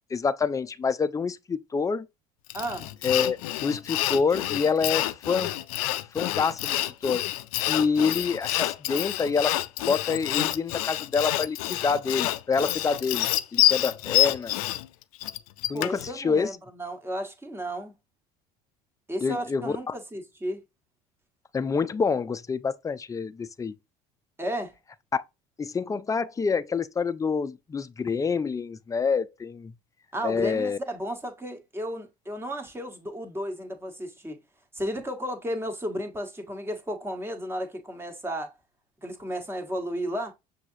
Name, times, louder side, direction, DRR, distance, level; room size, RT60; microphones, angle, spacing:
voice 1, 0.1-2.1 3.0-5.5 6.1-7.3 7.7-14.6 15.7-16.5 19.2-19.9 21.5-23.7 25.1-25.2 25.6-29.7 30.2-30.8, left 5 dB, 20° left, 0.4 m, -27 dB
Sawing, 2.5-16.1, left 14 dB, 85° left, 0.4 m, -28 dB
voice 2, 2.5-2.9 15.7-17.9 19.1-20.6 24.4-24.7 30.1-34.4 34.7-38.5 39.0-40.3, equal, 15° right, 1.2 m, -33 dB
6.0 x 2.8 x 2.7 m
supercardioid pair, 85°, 18 cm